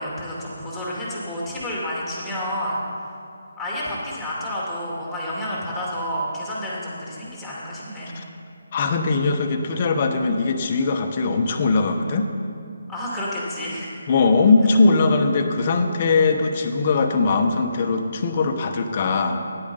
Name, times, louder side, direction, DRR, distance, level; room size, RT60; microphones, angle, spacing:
voice 1, 0.0-2.8 3.6-8.1 12.9-14.0, equal, 5° left, -6 dB, 2.2 m, -30 dB
voice 2, 8.7-12.3 14.1-19.4, left 3 dB, 35° left, 5 dB, 0.9 m, -20 dB
9.9 x 8.5 x 5.4 m, 2.4 s
figure-of-eight pair, 155°, 0 cm